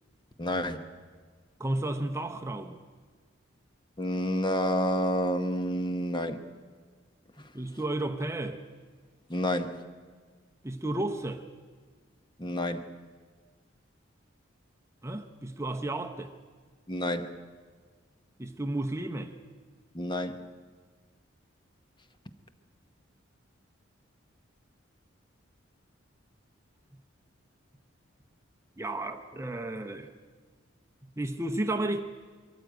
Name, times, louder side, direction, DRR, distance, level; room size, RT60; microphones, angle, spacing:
voice 1, 0.4-0.8 4.0-6.4 7.4-7.5 9.3-9.9 12.4-12.9 16.9-17.4 19.9-20.5, equal, 25° left, 0.9 m, -29 dB
voice 2, 1.6-2.8 7.5-8.6 10.6-11.5 15.0-16.3 18.4-19.4 28.8-30.1 31.2-32.0, right 1 dB, 15° right, 0.8 m, -32 dB
22.5 x 14.5 x 9.1 m
head